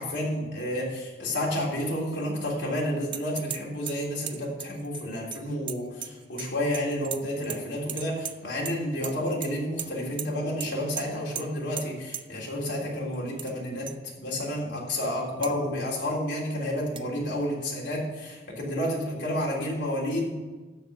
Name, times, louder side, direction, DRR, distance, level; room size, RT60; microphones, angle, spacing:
voice 1, 0.0-13.9 14.2-20.4, left 1 dB, 80° left, -3 dB, 3.4 m, -30 dB
sound 1, 3.1-3.6 3.9-6.5 6.7-7.6 7.9-8.8 9.0-9.5 9.8-9.9 10.2-10.3 10.6-10.7 11.0-11.1 11.4-11.5 11.8-11.9 12.1-12.2 13.1-13.5 13.9-14.0 14.5-14.6 15.4-15.5 17.0-17.1, right 9 dB, 30° right, 0.4 m, -36 dB
13.0 x 4.8 x 6.7 m, 1.3 s
head